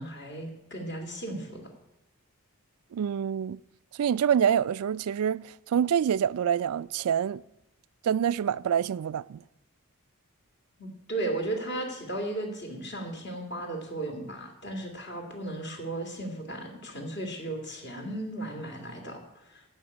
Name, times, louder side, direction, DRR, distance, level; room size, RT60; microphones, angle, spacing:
voice 1, 0.0-1.7 10.8-19.6, right 2 dB, 50° left, 2.7 m, -35 dB
voice 2, 2.9-3.6 4.0-7.4 8.0-9.4, right 8 dB, 90° right, 0.4 m, -26 dB
15.0 x 5.8 x 8.5 m
head